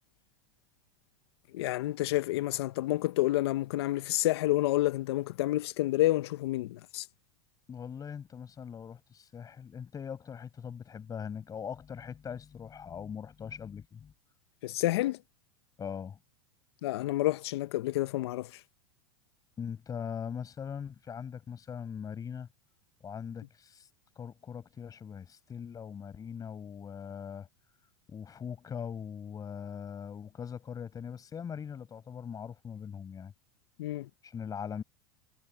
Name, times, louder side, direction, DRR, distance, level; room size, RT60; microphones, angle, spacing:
voice 1, 1.5-7.1 14.6-15.2 16.8-18.6 33.8-34.1, left 16 dB, 75° left, 1.0 m, -29 dB
voice 2, 7.7-14.1 15.8-16.2 19.6-22.5 23.0-23.9 24.1-27.5 28.1-33.3 34.2-34.8, left 7 dB, 25° left, 6.7 m, -41 dB
hypercardioid pair, 105°, 14 cm